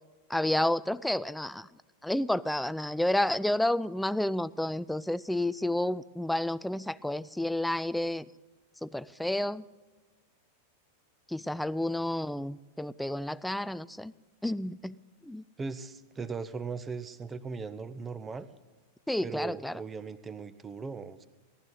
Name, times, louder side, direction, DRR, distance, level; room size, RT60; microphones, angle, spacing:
voice 1, 0.3-1.7 2.0-8.3 8.8-9.6 11.3-14.1 14.4-15.0 15.2-15.4 19.1-19.8, left 1 dB, 5° left, 17 dB, 0.3 m, -30 dB
voice 2, 15.6-18.5 19.2-21.3, right 4 dB, 20° right, 13 dB, 0.8 m, -38 dB
18.5 x 12.0 x 4.0 m, 1.3 s
figure-of-eight pair, 90°, 0 cm